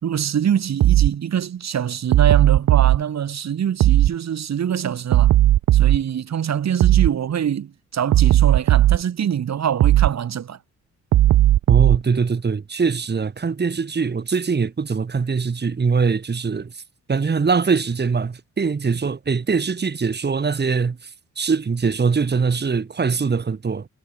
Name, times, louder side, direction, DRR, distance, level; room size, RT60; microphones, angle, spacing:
voice 1, 0.0-5.3 5.7-10.6, right 9 dB, 60° right, 4.4 m, -24 dB
sound 1, 0.8-1.1 2.1-3.0 3.8-4.1 5.1-6.0 6.8-7.1 8.1-9.0 9.8-10.1 11.1-12.0, right 14 dB, 90° right, 1.6 m, -15 dB
voice 2, 11.7-16.8 17.1-23.9, right 5 dB, 35° right, 4.2 m, -22 dB
cardioid pair, 105°, 30 cm